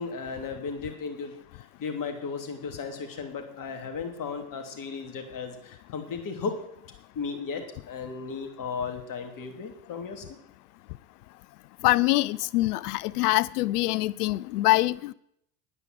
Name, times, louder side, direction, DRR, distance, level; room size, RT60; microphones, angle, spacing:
voice 1, 0.0-6.7 7.1-10.2, left 5 dB, 45° left, 5 dB, 3.0 m, -35 dB
voice 2, 11.8-15.1, left 18 dB, 75° left, 21 dB, 0.6 m, -24 dB
9.9 x 9.7 x 7.5 m, 0.73 s
hypercardioid pair, 70°, 47 cm